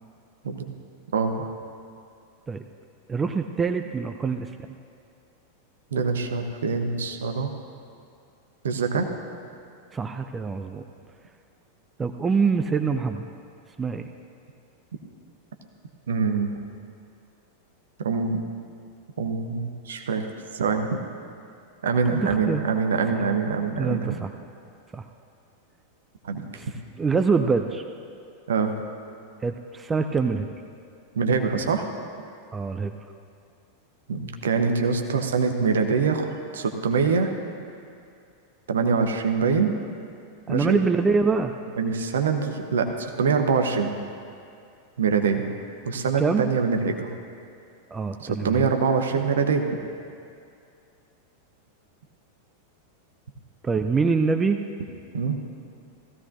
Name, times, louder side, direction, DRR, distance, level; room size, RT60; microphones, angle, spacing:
voice 1, 1.1-1.5 5.9-7.5 8.6-9.1 16.1-16.5 18.0-18.4 19.2-20.2 20.5-21.0 21.8-24.2 26.2-26.4 28.5-28.8 31.1-31.9 34.1-37.3 38.7-39.8 40.5-40.8 41.8-43.9 45.0-45.5 45.8-47.1 48.2-49.7 55.1-55.4, right 5 dB, 65° right, 5 dB, 1.0 m, -24 dB
voice 2, 3.1-4.5 9.9-10.8 12.0-13.3 13.8-14.0 22.1-22.6 23.1-23.2 23.8-24.3 24.9-25.1 26.5-26.7 27.0-27.8 29.4-30.5 32.5-32.9 40.5-41.5 46.2-46.4 47.9-48.7 53.6-54.6, right 4 dB, 15° right, 7 dB, 0.5 m, -24 dB
17.0 x 15.0 x 2.6 m, 2.4 s
figure-of-eight pair, 90°, 0 cm